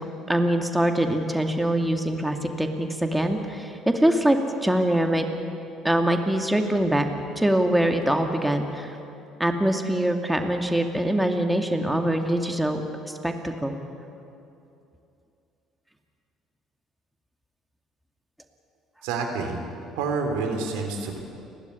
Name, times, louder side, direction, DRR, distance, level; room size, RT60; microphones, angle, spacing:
voice 1, 0.3-5.3 5.8-7.1 7.3-8.9 9.4-12.8 13.2-13.8, right 1 dB, 5° right, 4 dB, 2.4 m, -23 dB
voice 2, 19.0-19.6 19.9-21.2, right 4 dB, 75° right, 3 dB, 3.3 m, -28 dB
30.0 x 12.0 x 9.9 m, 2.7 s
hypercardioid pair, 60°, 0 cm